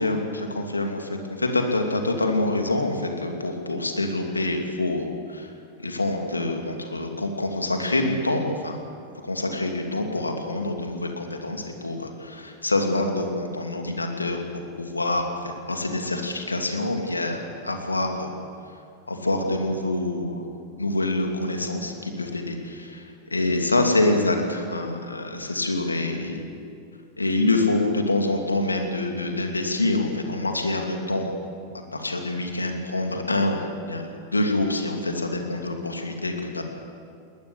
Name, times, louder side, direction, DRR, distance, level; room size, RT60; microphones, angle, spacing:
voice 1, 0.0-5.5 5.8-8.8 9.2-14.4 14.8-18.3 19.1-20.5 20.8-23.0 23.3-26.4 27.2-31.4 31.9-36.6, left 2 dB, 80° left, 3 dB, 2.8 m, -26 dB
21.0 x 20.0 x 8.4 m, 2.3 s
figure-of-eight pair, 90°, 0 cm